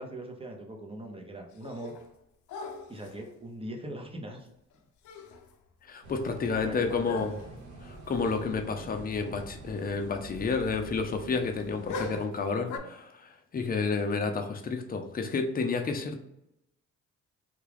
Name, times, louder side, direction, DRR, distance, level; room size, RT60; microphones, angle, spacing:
voice 1, 0.0-2.0 2.9-4.5 6.6-7.3 14.0-14.3, right 1 dB, 20° right, 3 dB, 0.7 m, -41 dB
sound 1, 1.5-2.1 2.5-3.3 4.7-4.8 5.0-5.5 5.9-6.0 7.1-7.6 8.2-8.5 8.7-8.8 11.9-12.8, left 2 dB, 75° left, 0.6 m, -40 dB
voice 2, 5.9-7.3 7.8-16.2, left 4 dB, 30° left, 5 dB, 0.5 m, -30 dB
sound 2, 6.0-12.2, right 2 dB, 75° right, 1.0 m, -46 dB
3.6 x 2.3 x 3.3 m, 0.84 s
cardioid pair, 90°, 30 cm